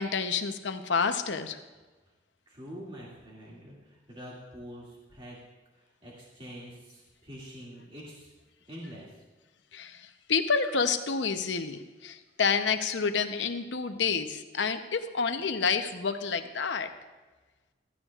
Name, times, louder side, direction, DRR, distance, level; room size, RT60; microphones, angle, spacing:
voice 1, 0.0-1.6 9.7-16.9, left 5 dB, 75° left, 8 dB, 0.8 m, -29 dB
voice 2, 2.5-5.4 5.8-8.3 8.7-9.2, equal, 30° right, -5 dB, 2.3 m, -45 dB
15.5 x 14.0 x 2.4 m, 1.3 s
head